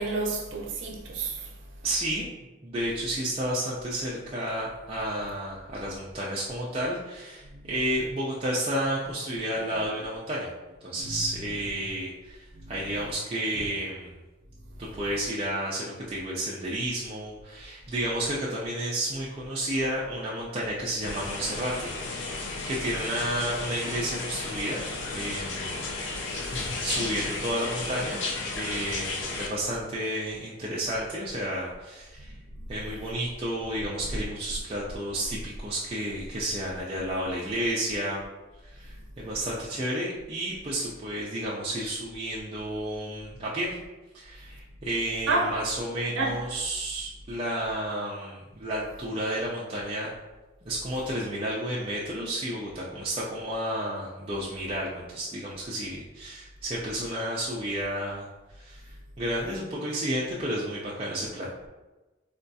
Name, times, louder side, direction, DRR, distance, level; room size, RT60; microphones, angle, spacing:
voice 1, 0.0-1.4 11.0-11.2 45.3-45.5 46.2-46.3, right 3 dB, 75° right, 0.6 m, -28 dB
voice 2, 1.8-2.3 2.6-10.5 10.8-14.1 14.8-21.9 22.3-24.9 25.1-25.8 26.8-28.2 28.6-32.3 32.7-38.2 38.7-43.8 44.1-50.1 50.6-58.3 58.6-58.8 59.2-61.5, right 1 dB, 30° right, 0.4 m, -31 dB
sound 1, 21.0-29.5, left 3 dB, 65° left, 0.5 m, -33 dB
4.3 x 2.3 x 2.6 m
head